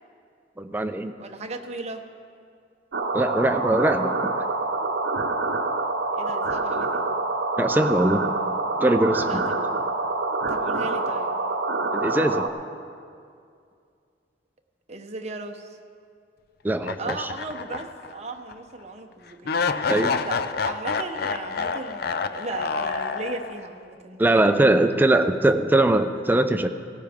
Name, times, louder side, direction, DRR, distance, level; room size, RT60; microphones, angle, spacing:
voice 1, 0.6-1.1 3.1-4.1 7.6-8.2 8.8-9.4 11.9-12.5 16.6-17.3 19.9-20.1 24.2-26.7, right 1 dB, 10° right, 8 dB, 0.5 m, -21 dB
voice 2, 1.2-2.0 6.1-7.0 9.3-9.6 10.5-11.4 14.9-15.7 17.0-19.9 20.2-25.6, right 3 dB, 40° right, 3 dB, 0.8 m, -36 dB
sound 1, 2.9-12.5, right 3 dB, 75° right, 0.8 m, -26 dB
sound 2, 16.8-18.1 18.5-18.6 19.4-23.7, left 5 dB, 60° left, 0.4 m, -28 dB
16.5 x 13.5 x 3.6 m, 2.3 s
head